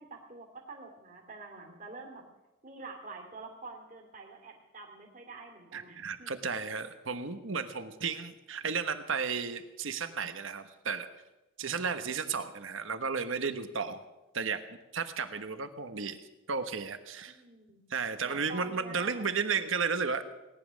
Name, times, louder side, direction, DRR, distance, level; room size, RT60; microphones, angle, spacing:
voice 1, 0.0-2.3 2.6-6.3 17.3-17.8 18.3-19.3, right 3 dB, 40° right, 1 dB, 2.6 m, -47 dB
voice 2, 5.7-11.1 11.6-14.0 14.3-16.2 16.5-17.4 17.9-20.2, right 5 dB, 65° right, 10 dB, 1.1 m, -33 dB
18.0 x 10.5 x 6.3 m, 1.0 s
head